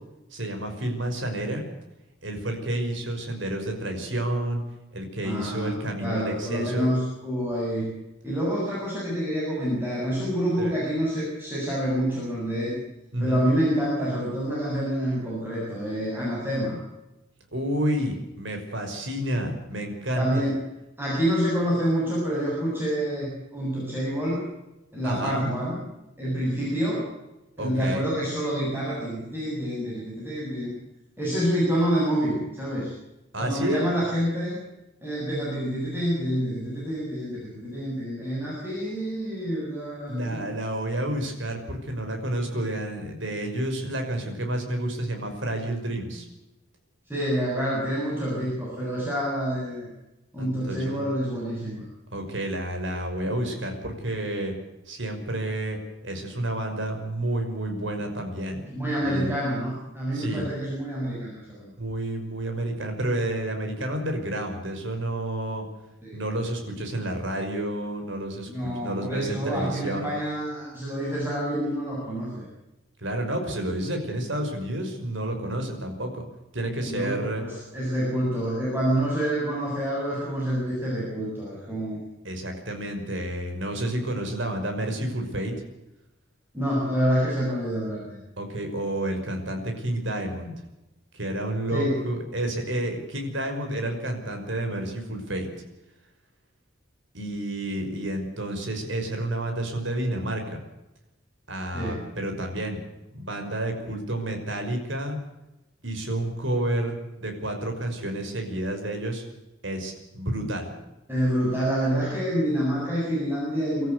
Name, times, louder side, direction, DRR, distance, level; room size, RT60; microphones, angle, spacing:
voice 1, 0.3-1.6 2.2-4.6 4.9-6.9 10.6-10.7 13.1-13.5 17.5-20.4 25.0-25.5 27.6-28.0 33.3-33.8 40.1-46.3 50.4-51.0 52.1-54.5 54.9-55.8 56.0-58.6 59.0-59.3 60.1-60.5 61.8-65.6 66.1-70.1 73.0-76.2 76.5-77.4 82.2-85.5 88.4-90.5 91.1-95.5 97.1-100.6 101.5-102.8 103.1-105.2 105.8-109.2 109.6-110.7, right 1 dB, 65° right, 5 dB, 5.5 m, -30 dB
voice 2, 5.2-7.9 8.2-12.8 13.2-16.8 20.2-20.6 21.0-24.4 24.9-25.9 26.2-27.1 27.6-30.7 31.2-32.9 33.4-34.6 35.0-40.4 47.1-49.9 50.3-51.8 58.6-61.7 66.0-66.1 68.5-72.4 76.9-82.0 86.5-88.2 91.7-91.9 101.7-102.0 111.1-113.9, equal, 10° right, -6 dB, 7.7 m, -27 dB
25.0 x 13.5 x 8.2 m, 0.97 s
head